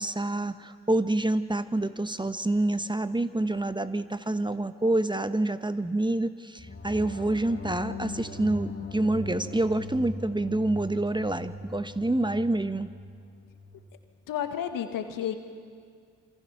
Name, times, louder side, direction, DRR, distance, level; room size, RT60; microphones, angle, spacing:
voice 1, 0.0-12.9, right 2 dB, 15° right, 12 dB, 1.1 m, -27 dB
sound 1, 6.6-13.9, left 2 dB, 30° left, 4.8 m, -40 dB
voice 2, 14.3-15.3, left 9 dB, 70° left, 7 dB, 1.9 m, -31 dB
27.5 x 24.0 x 5.9 m, 2.1 s
hypercardioid pair, 40°, 34 cm